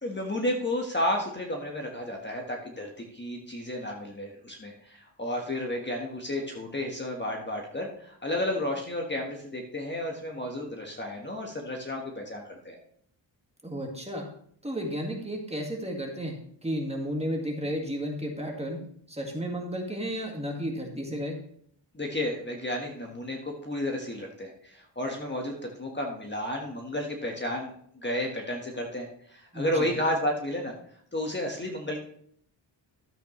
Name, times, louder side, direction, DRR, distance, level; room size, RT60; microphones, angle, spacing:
voice 1, 0.0-12.8 21.9-30.7 31.1-32.0, left 1 dB, 25° left, 1 dB, 1.4 m, -32 dB
voice 2, 13.6-14.3 14.6-18.8 19.1-21.4 29.5-29.9, equal, 15° right, 1 dB, 1.8 m, -33 dB
12.5 x 8.1 x 3.1 m, 0.64 s
wide cardioid pair, 120°, 45 cm